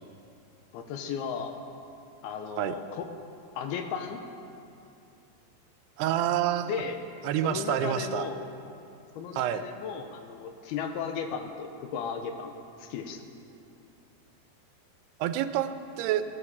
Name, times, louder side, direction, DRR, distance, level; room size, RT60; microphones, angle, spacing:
voice 1, 0.7-1.5 2.2-3.1 3.6-4.2 6.6-7.0 7.4-8.4 9.2-12.5 12.8-13.2, left 6 dB, 80° left, 6 dB, 2.9 m, -35 dB
voice 2, 6.0-6.8 7.2-8.3 9.3-9.6 15.2-16.3, right 11 dB, 85° right, 10 dB, 2.7 m, -28 dB
16.5 x 12.0 x 7.2 m, 2.7 s
omnidirectional pair, 4.6 m